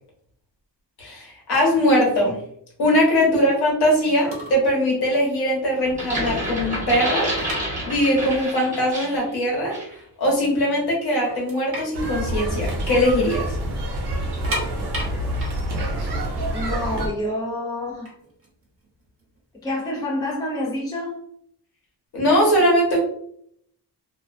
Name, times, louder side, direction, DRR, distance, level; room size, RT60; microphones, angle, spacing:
voice 1, 1.0-2.4 2.8-7.3 7.8-9.7 10.2-13.6 22.1-23.0, equal, 70° left, -3 dB, 1.1 m, -20 dB
sound 1, 4.2-4.7 5.0-5.2 5.7-5.8 6.1-8.3 8.6-8.7 9.4-9.5 9.8-10.5 10.9-11.0 11.2-13.2 13.5-13.6 14.2-17.1 17.8-19.6, equal, 35° right, 0.9 m, -34 dB
sound 2, 5.8-9.3 9.7-9.9, equal, 20° right, 1.3 m, -29 dB
sound 3, 11.9-17.1, right 1 dB, 70° right, 0.8 m, -27 dB
voice 2, 16.5-18.1 19.6-21.2, left 1 dB, 10° left, -3 dB, 0.4 m, -28 dB
2.4 x 2.1 x 2.5 m, 0.67 s
wide cardioid pair, 155°, 40 cm